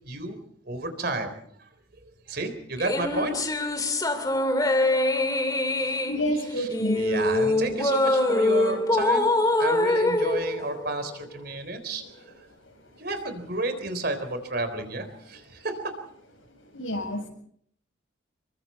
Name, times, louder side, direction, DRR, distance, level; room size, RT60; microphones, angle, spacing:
voice 1, 0.0-0.4 0.6-3.7 4.1-4.4 5.8-6.0 6.3-6.7 6.9-12.5 13.0-16.0, right 2 dB, 50° right, 8 dB, 3.8 m, -32 dB
sound 1, 2.8-11.4, left 2 dB, 20° left, 2.5 m, -24 dB
voice 2, 6.0-7.0 16.7-17.3, equal, 80° left, 3 dB, 7.4 m, -28 dB
27.5 x 23.0 x 4.3 m, 0.63 s
head